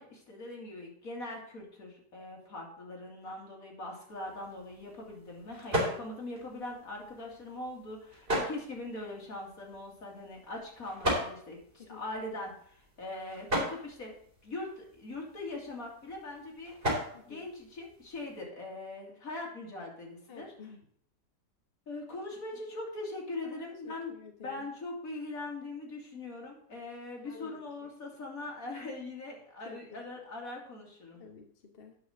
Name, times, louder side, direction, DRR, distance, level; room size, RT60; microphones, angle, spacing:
voice 1, 0.0-14.1 14.4-16.8 17.3-20.5 21.9-24.1 24.4-31.2, left 2 dB, 60° left, -1 dB, 2.8 m, -41 dB
sound 1, 4.1-18.4, equal, 35° right, 3.3 m, -38 dB
voice 2, 17.1-17.5 20.3-20.9 23.4-24.6 27.2-27.9 29.6-30.0 31.2-32.0, left 6 dB, 40° left, 3 dB, 1.1 m, -51 dB
9.5 x 5.6 x 6.5 m, 0.63 s
omnidirectional pair, 1.7 m